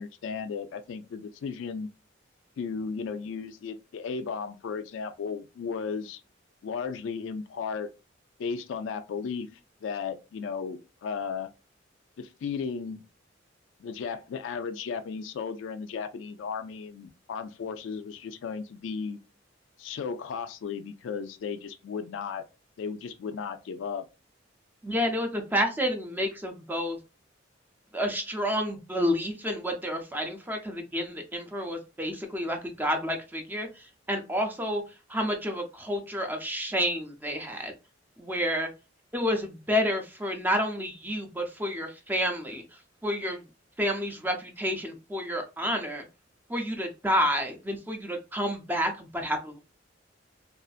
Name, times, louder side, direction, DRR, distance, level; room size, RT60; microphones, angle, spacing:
voice 1, 0.0-1.9 2.6-6.2 6.6-7.9 8.4-9.5 9.8-11.5 12.2-13.0 13.8-19.2 19.8-22.4 22.8-24.0, left 5 dB, 70° left, 0.3 m, -35 dB
voice 2, 24.8-27.0 27.9-34.8 35.1-37.7 38.2-38.7 39.1-42.6 43.0-43.4 43.8-46.0 46.5-49.6, equal, 10° right, 0.5 m, -29 dB
2.5 x 2.3 x 2.4 m
head